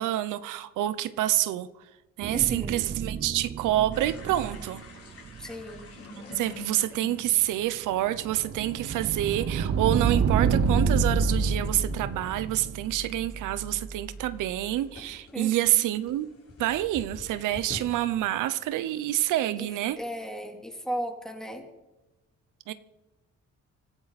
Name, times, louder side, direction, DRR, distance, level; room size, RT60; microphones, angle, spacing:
voice 1, 0.0-1.7 2.2-4.8 6.2-16.3 16.6-20.0 22.7-22.8, right 14 dB, 90° right, 14 dB, 0.8 m, -27 dB
sound 1, 2.2-6.7 7.2-7.3, right 7 dB, 35° right, 0.7 m, -38 dB
voice 2, 2.3-2.9 5.4-5.9 15.3-15.8 19.6-19.7 20.0-21.6, equal, ahead, 2 dB, 3.2 m, -36 dB
sound 2, 3.9-20.1, left 3 dB, 50° left, 4.9 m, -49 dB
sound 3, 7.6-14.4, right 5 dB, 50° right, 1.4 m, -27 dB
24.5 x 13.0 x 4.2 m, 1.1 s
cardioid pair, 90°, 30 cm